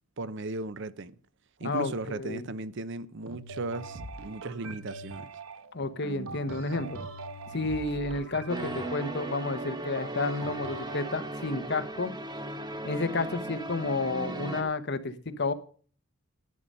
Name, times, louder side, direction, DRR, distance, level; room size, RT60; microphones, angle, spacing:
voice 1, 0.2-1.2 1.6-5.3, right 2 dB, 60° right, 0.7 m, -36 dB
voice 2, 1.6-2.5 5.7-7.0 7.5-12.1 12.8-15.5, left 3 dB, 55° left, 1.1 m, -31 dB
sound 1, 3.3-11.2, right 3 dB, 85° right, 1.0 m, -42 dB
sound 2, 8.5-14.6, right 1 dB, 20° right, 1.1 m, -37 dB
11.0 x 9.6 x 5.5 m
head